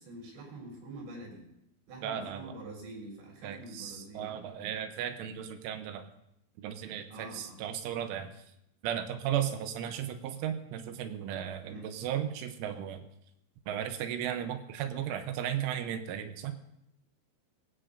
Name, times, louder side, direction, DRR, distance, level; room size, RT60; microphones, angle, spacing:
voice 1, 0.0-1.5 1.9-4.3 7.1-7.6 11.6-11.9, right 2 dB, 60° right, -1 dB, 5.8 m, -45 dB
voice 2, 2.0-2.5 3.4-6.1 6.6-8.3 8.8-13.1 13.7-16.6, right 9 dB, 80° right, 7 dB, 3.3 m, -35 dB
21.5 x 16.5 x 2.6 m, 0.80 s
omnidirectional pair, 5.7 m